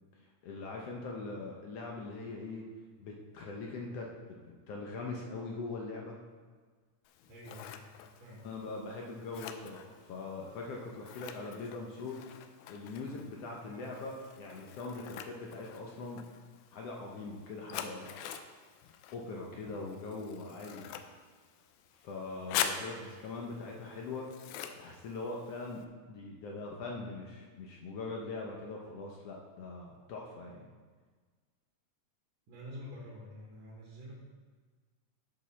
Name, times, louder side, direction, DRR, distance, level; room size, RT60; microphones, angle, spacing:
voice 1, 0.4-2.7 3.0-4.1 4.4-6.2 8.4-12.2 12.7-16.2 16.7-18.2 19.1-21.0 22.0-24.3 24.8-30.7, left 3 dB, 65° left, -1 dB, 1.7 m, -42 dB
Scissors, 7.1-25.8, left 9 dB, 85° left, 2.0 m, -44 dB
voice 2, 7.3-7.9 8.2-8.5 13.7-13.9 22.9-23.1 32.5-34.1, left 1 dB, 65° right, -4 dB, 2.5 m, -48 dB
11.5 x 5.4 x 4.1 m, 1.5 s
omnidirectional pair, 3.5 m